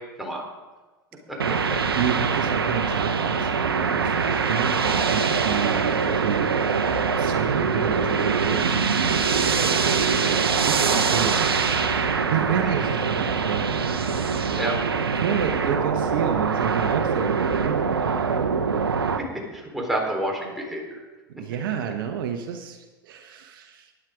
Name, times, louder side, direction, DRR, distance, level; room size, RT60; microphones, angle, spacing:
sound 1, 1.4-19.2, right 5 dB, 85° right, 1.0 m, -23 dB
voice 1, 2.0-6.5 7.2-10.2 10.7-11.5 11.8-13.9 15.1-18.4 21.3-23.9, right 8 dB, 65° right, 6 dB, 1.1 m, -30 dB
voice 2, 19.5-21.0, right 1 dB, ahead, -1 dB, 3.5 m, -29 dB
12.0 x 10.0 x 5.0 m, 1.2 s
hypercardioid pair, 90°, 12 cm